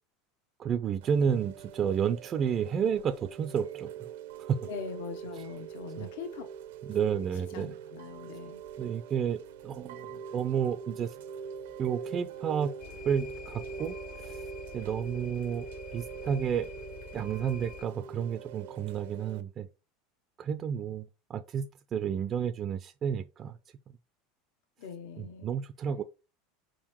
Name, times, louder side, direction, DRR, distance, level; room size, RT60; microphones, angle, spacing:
voice 1, 0.6-3.9 4.5-4.7 6.0-6.1 6.9-7.7 8.8-11.1 11.8-12.7 13.0-14.0 14.2-14.4 14.7-15.7 15.9-16.7 17.1-19.7 20.4-21.0 21.3-21.7 21.9-23.5 25.2-26.0, right 7 dB, 30° right, 0.3 m, -31 dB
Chime / Rain, 1.0-19.4, right 7 dB, 85° right, 0.6 m, -44 dB
voice 2, 4.6-6.5 7.5-8.6 24.8-25.5, left 6 dB, 80° left, 0.8 m, -42 dB
sound 1, 12.8-17.9, left 7 dB, 40° left, 0.6 m, -46 dB
4.6 x 3.7 x 2.9 m
supercardioid pair, 135°, 0 cm